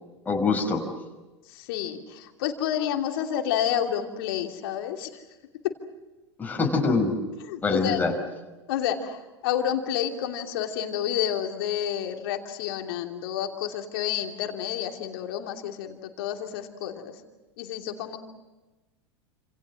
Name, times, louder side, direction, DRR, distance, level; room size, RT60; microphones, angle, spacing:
voice 1, 0.3-0.8 6.4-7.2 7.6-8.1, left 4 dB, 10° left, 1 dB, 5.4 m, -24 dB
voice 2, 1.5-5.2 5.6-5.7 7.5-8.0 8.7-17.1 17.6-18.2, left 10 dB, 55° left, 4 dB, 2.9 m, -29 dB
29.5 x 27.5 x 6.3 m, 1.1 s
figure-of-eight pair, 85°, 14 cm